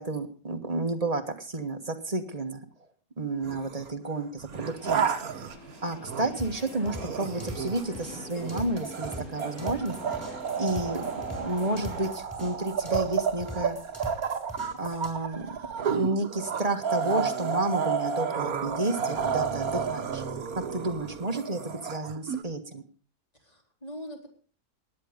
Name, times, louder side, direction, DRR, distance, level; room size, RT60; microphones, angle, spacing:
voice 1, 0.0-2.6 3.2-5.1 5.8-10.3 10.6-13.8 14.8-20.2 20.7-22.8, right 2 dB, 25° right, 7 dB, 1.6 m, -31 dB
sound 1, 3.4-3.9 4.4-6.5 6.8-22.4, right 6 dB, 75° right, 1.8 m, -31 dB
sound 2, 4.5-12.1, left 1 dB, 55° left, 5.5 m, -45 dB
sound 3, 6.4-15.1, left 1 dB, 10° left, 5.5 m, -42 dB
voice 2, 19.3-20.0 23.3-24.3, equal, 25° left, 0 dB, 4.2 m, -44 dB
18.0 x 10.5 x 5.1 m, 0.41 s
omnidirectional pair, 1.6 m